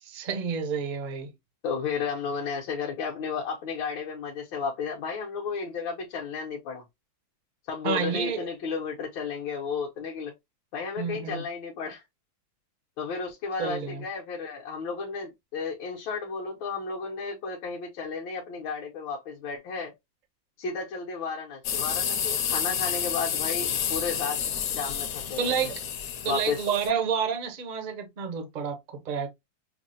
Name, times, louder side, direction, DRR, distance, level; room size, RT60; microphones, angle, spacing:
voice 1, 0.1-1.3 7.8-8.4 11.0-11.4 13.6-14.0 25.4-25.7 26.2-29.3, right 6 dB, 75° right, 0.4 m, -29 dB
voice 2, 1.6-6.8 7.7-10.3 10.7-12.0 13.0-19.9 20.6-24.4 24.7-25.5 26.3-26.7, left 5 dB, 80° left, 1.6 m, -33 dB
sound 1, 21.6-26.9, left 8 dB, 65° left, 1.2 m, -30 dB
5.8 x 2.0 x 2.6 m
omnidirectional pair, 2.1 m